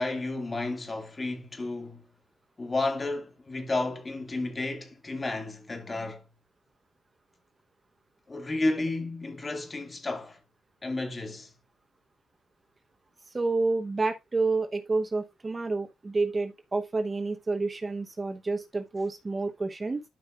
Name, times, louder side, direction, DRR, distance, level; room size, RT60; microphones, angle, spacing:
voice 1, 0.0-2.0 2.6-6.2 8.3-10.4 10.8-11.5, left 2 dB, 25° left, 2.4 m, -32 dB
voice 2, 13.3-20.0, right 3 dB, 25° right, 1.0 m, -29 dB
12.0 x 5.5 x 2.5 m
cardioid pair, 90°, 0 cm